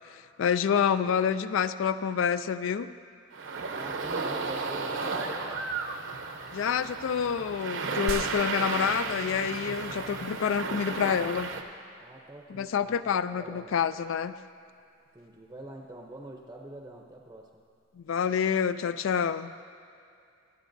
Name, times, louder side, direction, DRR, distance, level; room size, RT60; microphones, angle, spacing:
voice 1, 0.0-2.9 6.5-11.5 12.5-14.3 18.0-19.5, left 7 dB, 70° left, 13 dB, 0.3 m, -28 dB
voice 2, 0.7-1.2 3.7-5.7 12.0-13.1 13.3-13.7 15.1-17.6, right 1 dB, 15° right, 1 dB, 0.6 m, -46 dB
sound 1, 3.3-11.6, right 4 dB, 65° right, 0.8 m, -34 dB
sound 2, 8.1-10.4, right 5 dB, 85° right, 0.4 m, -39 dB
24.5 x 8.2 x 2.6 m, 2.5 s
head